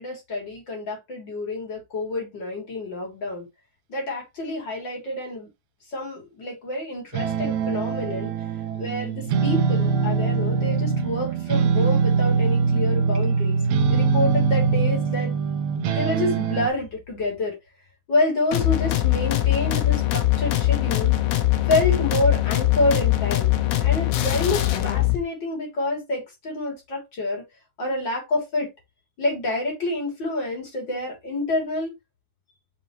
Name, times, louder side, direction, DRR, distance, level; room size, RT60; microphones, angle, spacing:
voice 1, 0.0-3.5 3.9-5.5 5.9-8.3 8.8-13.6 13.9-15.3 15.9-17.6 18.1-21.1 21.7-23.5 23.8-27.4 27.8-28.7 29.2-31.9, left 2 dB, 30° left, 3.6 m, -27 dB
sound 1, 7.1-16.7, right 5 dB, 80° right, 1.6 m, -22 dB
sound 2, 18.5-25.2, left 15 dB, 75° left, 3.1 m, -22 dB
7.0 x 5.5 x 3.2 m
omnidirectional pair, 4.8 m